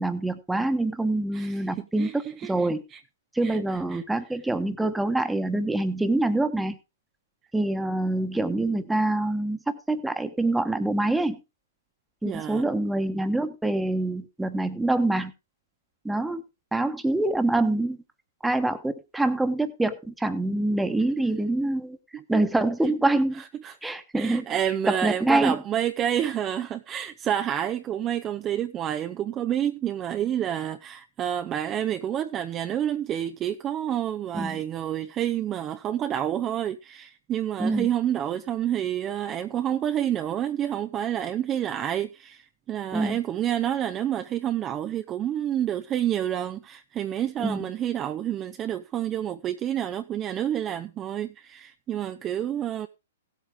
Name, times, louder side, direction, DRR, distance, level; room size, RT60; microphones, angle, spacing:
voice 1, 0.0-2.8 3.3-6.8 7.5-9.6 9.9-11.4 12.2-15.3 16.0-16.4 16.7-18.0 18.4-22.0 22.3-23.4 23.8-24.4 24.9-25.6 34.3-34.6 37.6-37.9 42.9-43.2 47.4-47.7, right 2 dB, 5° right, 1.2 m, -25 dB
voice 2, 1.3-3.0 3.4-4.0 12.2-12.8 22.1-22.4 23.4-52.9, right 10 dB, 25° right, 0.6 m, -29 dB
16.5 x 8.3 x 3.6 m
hypercardioid pair, 120°, 0 cm